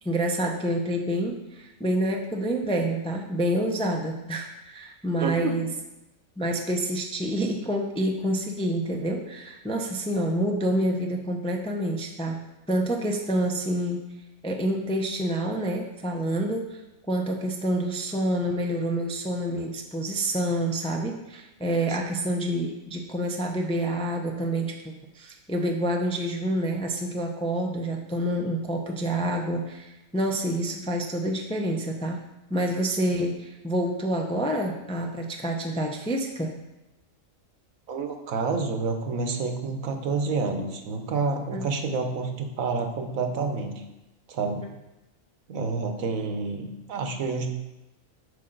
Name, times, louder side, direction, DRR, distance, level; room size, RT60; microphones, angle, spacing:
voice 1, 0.0-5.7 6.4-12.4 12.7-14.0 14.4-16.8 17.1-32.2 32.5-36.5 41.5-41.7, right 1 dB, 10° left, 1 dB, 0.3 m, -28 dB
voice 2, 5.2-5.6 21.9-22.0 37.9-43.7 44.3-44.6 45.5-47.5, right 4 dB, 85° right, 5 dB, 1.3 m, -28 dB
8.2 x 5.5 x 3.9 m, 0.97 s
omnidirectional pair, 1.4 m